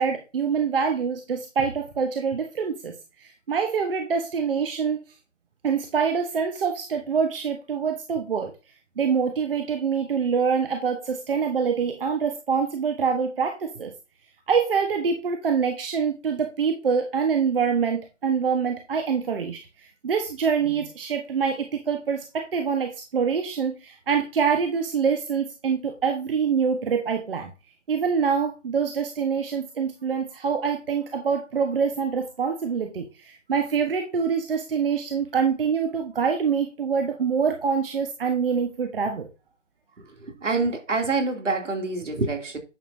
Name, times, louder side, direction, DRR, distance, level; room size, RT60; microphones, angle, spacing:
voice 1, 0.0-3.0 3.2-5.0 5.6-8.5 9.0-13.9 14.5-19.6 20.0-27.5 27.9-39.3, right 6 dB, 45° right, 1.3 m, -25 dB
voice 2, 40.2-42.6, right 3 dB, 75° right, 2.9 m, -26 dB
10.0 x 6.8 x 2.7 m
figure-of-eight pair, 150°, 37 cm